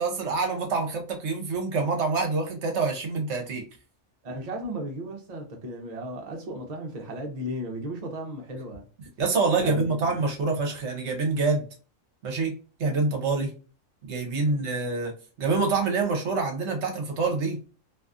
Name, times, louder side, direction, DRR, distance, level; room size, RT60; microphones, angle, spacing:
voice 1, 0.0-3.6 9.2-11.6 12.2-12.5 12.8-13.5 14.0-15.1 15.4-17.6, right 4 dB, 65° right, 1.0 m, -26 dB
voice 2, 4.2-8.9 9.6-10.2 14.5-14.6, right 1 dB, 45° right, 0.5 m, -35 dB
2.6 x 2.3 x 2.4 m
omnidirectional pair, 1.3 m